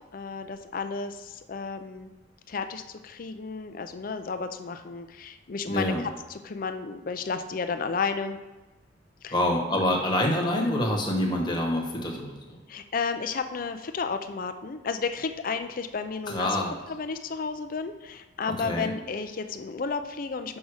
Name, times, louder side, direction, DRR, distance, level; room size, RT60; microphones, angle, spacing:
voice 1, 0.1-2.1 2.5-8.4 9.2-9.3 12.7-16.5 16.9-20.6, left 5 dB, 45° left, 8 dB, 0.4 m, -32 dB
voice 2, 5.7-6.0 9.3-12.6 16.3-16.8 18.6-18.9, left 1 dB, 20° left, 0 dB, 1.1 m, -26 dB
5.3 x 4.8 x 6.3 m, 1.1 s
head